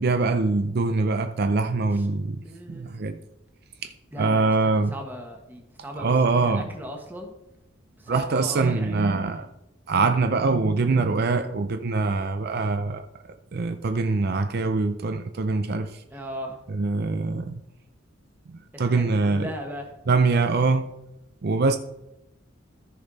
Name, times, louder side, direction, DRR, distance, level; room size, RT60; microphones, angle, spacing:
voice 1, 0.0-2.4 2.7-3.2 4.2-4.9 6.0-6.7 8.1-9.5 9.9-13.1 13.5-15.9 16.7-17.5 18.8-19.5 20.1-20.9 21.4-21.8, right 3 dB, 55° right, 0.5 m, -23 dB
voice 2, 2.4-3.1 4.1-7.3 8.0-9.0 9.3-9.5 16.1-16.6 18.7-19.9, equal, 10° right, 1.4 m, -38 dB
14.0 x 5.3 x 4.1 m
head